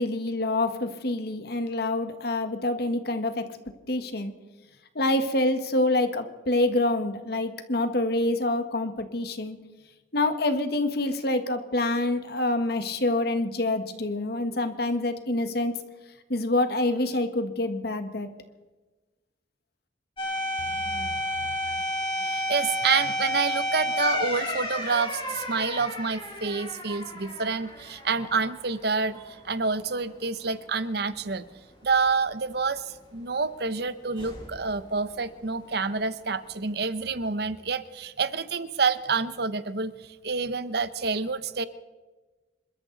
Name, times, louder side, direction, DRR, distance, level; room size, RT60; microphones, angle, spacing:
voice 1, 0.0-3.5 3.9-4.3 4.9-9.6 10.1-15.8 16.3-18.3, left 2 dB, 60° left, 8 dB, 1.6 m, -26 dB
sound 1, 20.2-28.8 29.2-29.3 34.2-34.7, equal, 25° left, 4.1 m, -31 dB
voice 2, 20.6-21.5 22.2-31.5 31.8-39.9 40.2-41.6, right 4 dB, 60° right, 14 dB, 0.9 m, -28 dB
27.5 x 13.0 x 4.0 m, 1.2 s
head